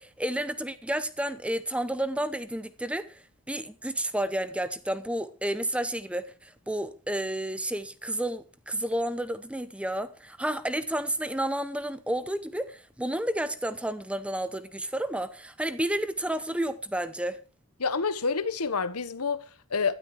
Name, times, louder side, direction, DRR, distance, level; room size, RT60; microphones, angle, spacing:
voice 1, 0.0-3.2 3.5-17.4, right 1 dB, 5° right, 0.8 m, -31 dB
voice 2, 17.8-19.9, left 5 dB, 85° left, 1.2 m, -28 dB
13.0 x 12.0 x 4.8 m
head